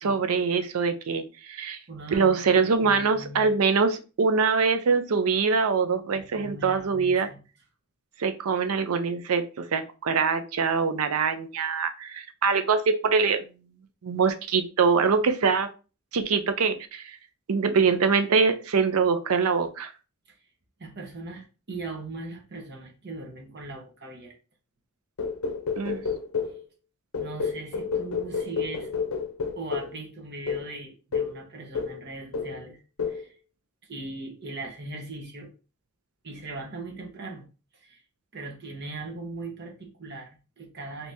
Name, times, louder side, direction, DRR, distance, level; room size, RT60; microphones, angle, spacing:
voice 1, 0.0-1.8 2.1-7.3 8.2-13.4 14.0-15.7 16.1-17.2 17.5-19.9 25.8-26.0, right 5 dB, 80° right, 8 dB, 0.5 m, -24 dB
voice 2, 1.9-3.5 6.1-7.4 20.8-24.3 27.2-28.9 29.6-33.3 33.9-35.5 36.2-37.5 37.8-38.0 38.3-41.1, right 2 dB, 50° right, 2 dB, 0.9 m, -39 dB
sound 1, 25.2-26.6 27.1-30.0 30.5-30.7 31.1-31.4 31.7-32.0 32.3-32.6 33.0-33.2, left 5 dB, 75° left, 0.6 m, -30 dB
2.9 x 2.7 x 3.4 m, 0.33 s
head